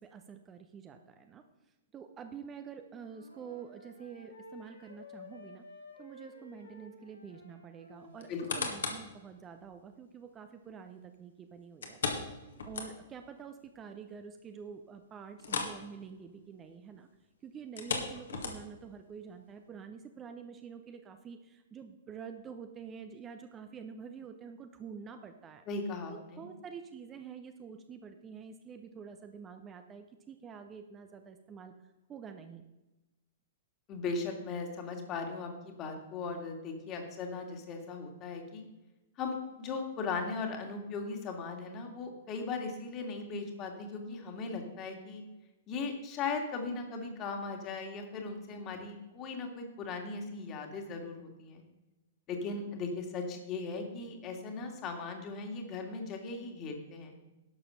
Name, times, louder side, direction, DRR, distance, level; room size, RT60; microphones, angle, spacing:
voice 1, 0.0-1.4 1.9-5.6 6.0-12.0 12.6-17.1 17.4-25.6 26.1-32.6, right 6 dB, 20° right, 7 dB, 0.8 m, -47 dB
Wind instrument woodwind instrument, 3.0-8.5, left 2 dB, 80° left, 2.6 m, -53 dB
voice 2, 8.0-8.6 25.7-26.5 33.9-38.6 39.2-45.2 45.7-51.6 52.3-57.1, left 4 dB, 30° left, 3 dB, 2.1 m, -38 dB
sound 1, 8.2-9.1 9.6-9.7 11.8-13.3 13.6-13.7 14.1-14.2 15.4-15.8 16.1-16.3 17.6-18.9 19.5-19.6, left 4 dB, 60° left, 1.9 m, -36 dB
11.5 x 7.0 x 5.7 m, 1.0 s
figure-of-eight pair, 105°, 0 cm